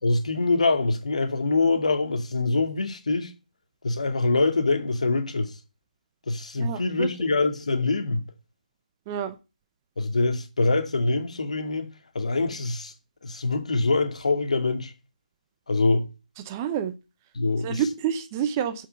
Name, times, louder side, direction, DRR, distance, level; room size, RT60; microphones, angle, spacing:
voice 1, 0.0-3.3 3.8-5.5 6.3-8.2 10.0-11.9 12.1-12.9 13.2-14.9 15.7-16.1 17.3-17.8, left 3 dB, 55° left, 2.4 m, -24 dB
voice 2, 6.6-7.1 9.1-9.4 16.4-16.9 17.6-18.9, right 9 dB, 15° right, 0.8 m, -28 dB
8.4 x 8.3 x 6.8 m
figure-of-eight pair, 150°, 4 cm